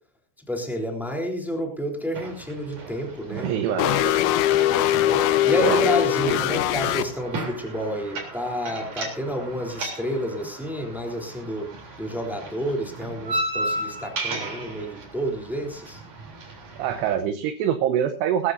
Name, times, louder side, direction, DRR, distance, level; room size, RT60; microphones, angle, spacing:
voice 1, 0.5-3.9 4.9-11.7 12.0-16.0, equal, ahead, 0 dB, 2.6 m, -30 dB
sound 1, 2.1-17.1, right 1 dB, 40° right, 4.6 m, -35 dB
voice 2, 3.3-4.2 5.7-5.8 16.8-18.5, right 9 dB, 75° right, 7 dB, 2.8 m, -25 dB
sound 2, 3.8-7.0, left 12 dB, 85° left, 3.4 m, -21 dB
21.0 x 14.0 x 2.7 m, 0.40 s
omnidirectional pair, 5.6 m